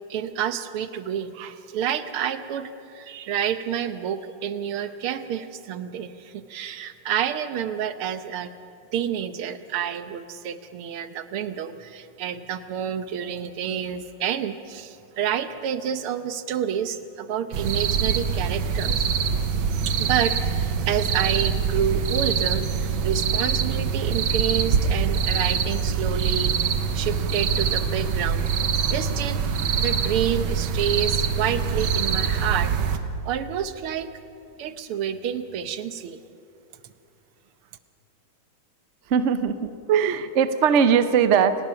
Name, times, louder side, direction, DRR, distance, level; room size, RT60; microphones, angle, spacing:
voice 1, 0.1-8.5 8.9-19.1 19.9-28.4 28.9-29.4 29.8-32.7 33.3-34.1 34.6-36.2, right 9 dB, 90° right, 11 dB, 1.9 m, -29 dB
sound 1, 17.5-33.0, right 6 dB, 70° right, 1.8 m, -24 dB
voice 2, 39.1-41.6, right 7 dB, 50° right, 11 dB, 0.8 m, -20 dB
28.5 x 18.5 x 5.7 m, 2.7 s
omnidirectional pair, 2.3 m